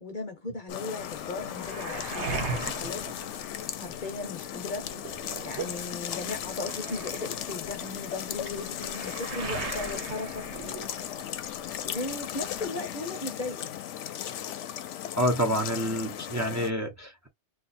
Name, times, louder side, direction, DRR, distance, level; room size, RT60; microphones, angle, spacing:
voice 1, 0.0-3.2 3.8-4.9 5.4-10.5 11.8-13.7, left 3 dB, 45° left, 0.9 m, -37 dB
sound 1, 0.7-16.7, left 10 dB, 85° left, 0.9 m, -37 dB
Waves surf, 1.0-4.2 4.5-11.4 11.7-12.6, right 4 dB, 75° right, 1.2 m, -39 dB
voice 2, 15.1-17.3, equal, 15° right, 0.9 m, -28 dB
2.7 x 2.5 x 4.2 m
omnidirectional pair, 1.2 m